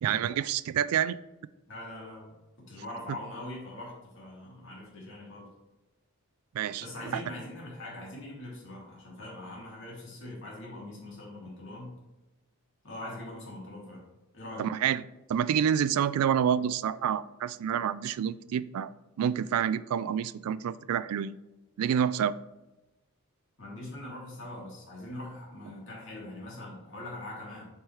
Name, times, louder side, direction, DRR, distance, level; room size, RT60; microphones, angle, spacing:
voice 1, 0.0-1.2 6.5-6.8 7.1-7.2 14.6-15.0 15.3-21.4 21.8-22.4, right 9 dB, 85° right, 0.3 m, -28 dB
voice 2, 1.7-5.5 6.8-12.0 12.8-14.0 14.3-14.7 23.6-27.7, left 1 dB, 55° left, 2.4 m, -42 dB
8.1 x 4.5 x 3.2 m
head